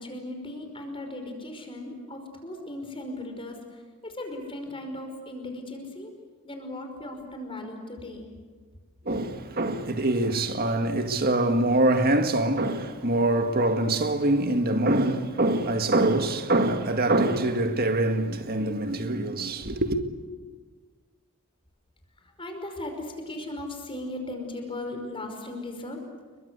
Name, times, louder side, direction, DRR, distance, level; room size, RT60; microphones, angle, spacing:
voice 1, 0.0-6.1 6.4-8.3 22.2-26.0, left 1 dB, 25° left, 5.2 m, -37 dB
voice 2, 9.0-20.0, right 2 dB, 45° right, 1.9 m, -24 dB
29.5 x 23.0 x 8.3 m
head